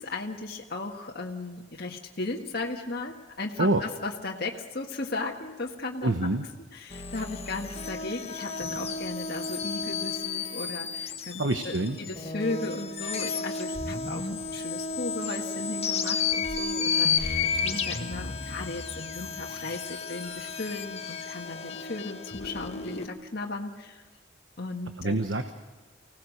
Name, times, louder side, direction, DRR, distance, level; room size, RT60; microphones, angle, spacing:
voice 1, 0.0-6.1 6.7-24.0 24.6-25.2, left 3 dB, 55° left, 0 dB, 1.8 m, -36 dB
voice 2, 6.0-6.4 11.4-12.0 25.0-25.5, right 2 dB, 75° right, 7 dB, 1.1 m, -26 dB
sound 1, 6.9-23.1, left 5 dB, 35° left, 1.3 m, -32 dB
25.0 x 17.5 x 6.6 m, 1.3 s
head